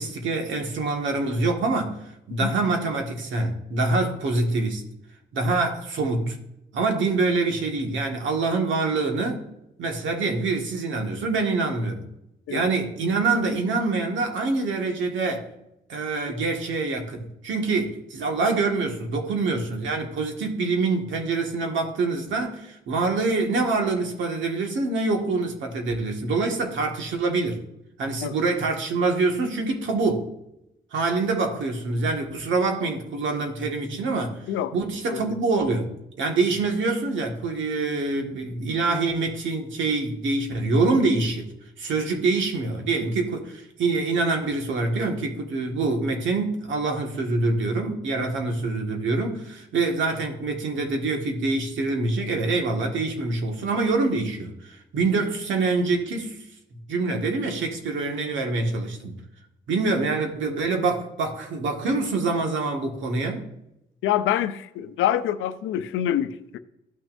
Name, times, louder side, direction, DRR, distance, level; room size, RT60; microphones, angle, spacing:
voice 1, 0.0-2.0 2.3-4.8 5.3-6.4 6.7-9.4 9.8-12.1 12.5-15.5 15.9-27.6 28.0-30.3 30.9-34.4 34.7-35.9 36.2-41.5 41.8-56.4 56.9-59.1 59.7-63.5, right 3 dB, 70° right, 1.8 m, -25 dB
voice 2, 64.0-66.6, left 11 dB, 80° left, 0.6 m, -26 dB
14.5 x 6.1 x 2.6 m
cardioid pair, 90°, 20 cm